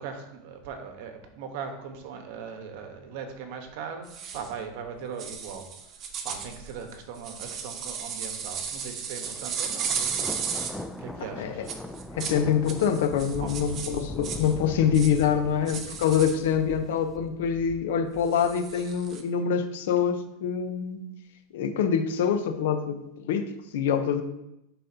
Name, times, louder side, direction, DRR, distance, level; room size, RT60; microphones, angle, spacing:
voice 1, 0.0-10.6 11.0-11.7, right 6 dB, 60° right, 5 dB, 1.1 m, -39 dB
sound 1, 4.1-4.5 5.2-10.8 11.7-12.4 12.7-14.5 14.9-15.2 15.7-16.4 18.3-19.2, right 7 dB, 30° right, 0.7 m, -35 dB
Thunder, 9.2-19.0, left 1 dB, 5° left, 0.4 m, -41 dB
voice 2, 12.1-21.0 21.5-24.2, left 7 dB, 75° left, 8 dB, 0.8 m, -25 dB
10.0 x 4.1 x 2.8 m, 0.86 s
supercardioid pair, 150°, 0 cm